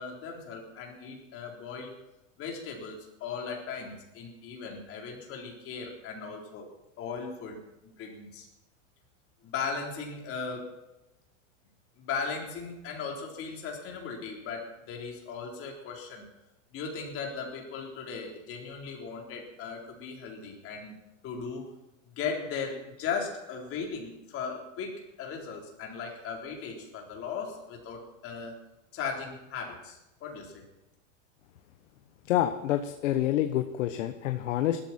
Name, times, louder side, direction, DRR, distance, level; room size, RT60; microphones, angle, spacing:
voice 1, 0.0-1.9 2.4-6.7 7.0-8.5 9.4-10.7 12.0-16.3 16.7-21.7 22.2-28.6 28.9-30.6, left 5 dB, 35° left, 0 dB, 4.0 m, -37 dB
voice 2, 32.3-34.8, left 12 dB, 70° left, 7 dB, 1.2 m, -27 dB
19.5 x 13.0 x 4.4 m, 0.95 s
supercardioid pair, 135°, 39 cm